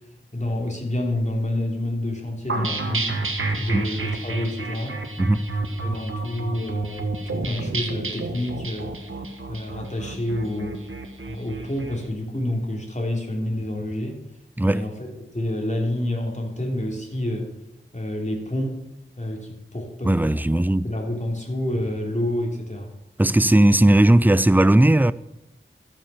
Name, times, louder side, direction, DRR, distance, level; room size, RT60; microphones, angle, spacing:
voice 1, 0.3-3.2 3.5-5.0 5.8-8.9 9.5-10.8 11.2-14.2 14.6-14.9 15.3-17.5 17.9-18.8 19.2-20.1 20.8-22.9, left 1 dB, 35° left, 3.4 m, -28 dB
sound 1, 2.5-12.0, right 3 dB, 85° right, 1.6 m, -30 dB
voice 2, 14.6-14.9 20.0-20.9 23.2-25.1, right 1 dB, 10° right, 0.5 m, -17 dB
13.5 x 7.6 x 7.0 m
wide cardioid pair, 45°, 20 cm